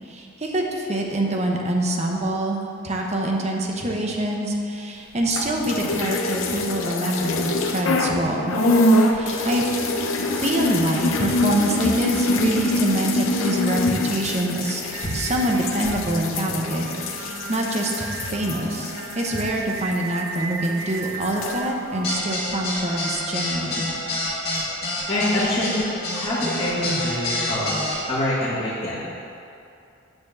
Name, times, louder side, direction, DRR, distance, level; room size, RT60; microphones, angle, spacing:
voice 1, 0.1-8.6 9.1-9.9 10.3-23.9, right 1 dB, 35° right, 0 dB, 0.9 m, -25 dB
sound 1, 5.2-8.2 8.5-20.4 20.6-21.6, left 2 dB, 75° left, 0.7 m, -25 dB
voice 2, 8.8-9.5 15.0-15.4 25.1-27.8 28.1-29.1, left 1 dB, 25° left, -11 dB, 1.7 m, -26 dB
Singing, 14.9-22.5, right 5 dB, 75° right, 0.5 m, -36 dB
sound 2, 22.0-28.0, left 2 dB, 55° left, 2.0 m, -27 dB
8.0 x 4.4 x 7.0 m, 2.6 s
head